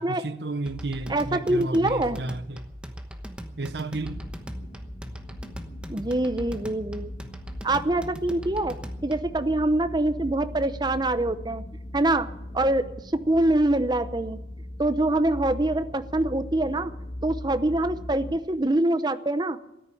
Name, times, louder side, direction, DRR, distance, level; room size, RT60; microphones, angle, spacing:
voice 1, 0.2-2.6 3.6-4.2, right 2 dB, 75° right, 0.9 m, -32 dB
sound 1, 0.7-9.4, equal, 5° right, 1.0 m, -40 dB
voice 2, 1.1-2.2 5.9-7.1 7.6-11.6 11.9-12.3 12.5-12.9 13.1-14.4 14.8-16.9 17.2-19.6, right 1 dB, 25° right, 0.7 m, -24 dB
sound 2, 4.0-18.4, left 1 dB, 45° left, 1.8 m, -39 dB
14.0 x 10.0 x 9.9 m
head